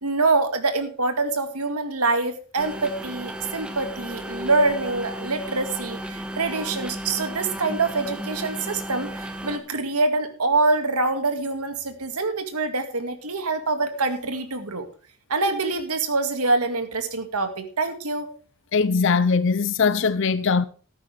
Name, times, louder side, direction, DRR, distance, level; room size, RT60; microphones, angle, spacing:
voice 1, 0.0-14.9 15.3-18.3, right 3 dB, 90° right, 2.1 m, -25 dB
sound 1, 2.6-9.6, right 1 dB, 5° right, 1.4 m, -34 dB
voice 2, 18.7-20.7, left 5 dB, 55° left, 0.6 m, -21 dB
13.5 x 11.5 x 3.4 m
head